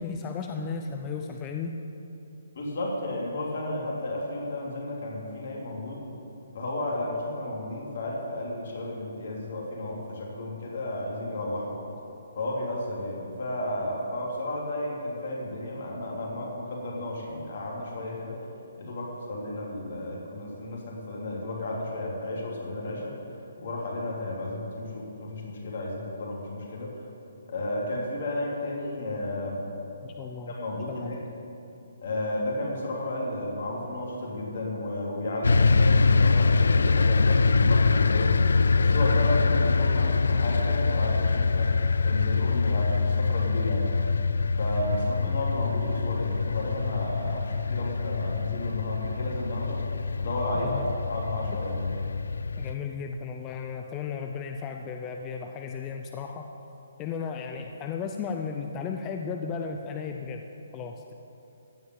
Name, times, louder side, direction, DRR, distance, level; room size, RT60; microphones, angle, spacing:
voice 1, 0.0-1.8 30.0-30.5 30.9-31.2 45.3-45.4 50.5-50.9 52.6-56.5 57.0-60.4 60.7-61.1, left 5 dB, 20° left, 4 dB, 0.5 m, -35 dB
voice 2, 2.5-6.0 6.5-11.8 12.3-18.3 18.8-23.2 23.6-26.9 27.5-29.6 30.5-31.2 32.0-41.7 42.0-43.9 44.6-49.8 50.2-51.9, left 1 dB, 55° left, -3 dB, 3.0 m, -33 dB
sound 1, 35.4-52.7, left 4 dB, 90° left, 0.4 m, -24 dB
15.5 x 5.5 x 9.3 m, 2.9 s
hypercardioid pair, 165°, 0 cm